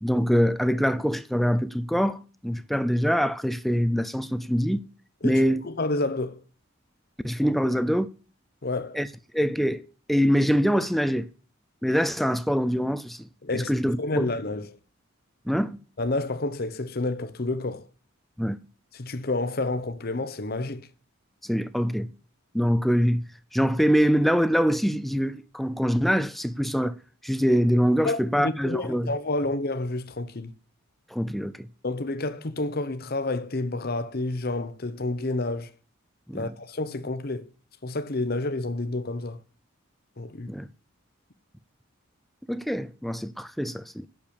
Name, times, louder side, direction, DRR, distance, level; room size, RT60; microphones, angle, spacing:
voice 1, 0.0-4.9 5.2-5.6 7.2-8.1 8.9-9.1 9.3-9.8 10.1-11.3 11.8-14.3 15.5-15.8 18.4-18.6 21.4-22.1 22.5-27.0 27.2-29.1 31.1-31.7 36.3-36.5 40.5-40.7 42.5-44.1, equal, ahead, 0.5 m, -24 dB
voice 2, 5.2-6.4 8.6-9.0 13.4-13.7 14.0-14.8 16.0-17.9 18.9-20.9 28.0-30.5 31.8-35.7 36.3-37.5 37.8-39.4 40.2-40.5, left 2 dB, 45° left, 0.8 m, -29 dB
8.5 x 6.9 x 8.6 m
head